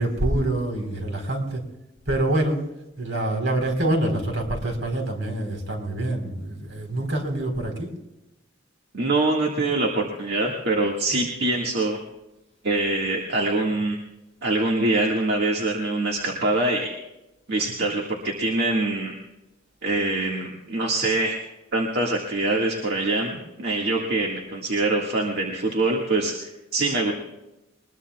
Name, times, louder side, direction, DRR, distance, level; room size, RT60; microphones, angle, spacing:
voice 1, 0.0-1.6 2.1-2.7 3.0-7.9, right 1 dB, 75° right, 3 dB, 4.0 m, -26 dB
voice 2, 8.9-12.0 12.6-14.0 14.4-16.9 17.5-19.2 19.8-21.4 21.7-27.1, right 2 dB, 55° right, -1 dB, 1.9 m, -24 dB
22.5 x 21.0 x 2.4 m, 0.96 s
head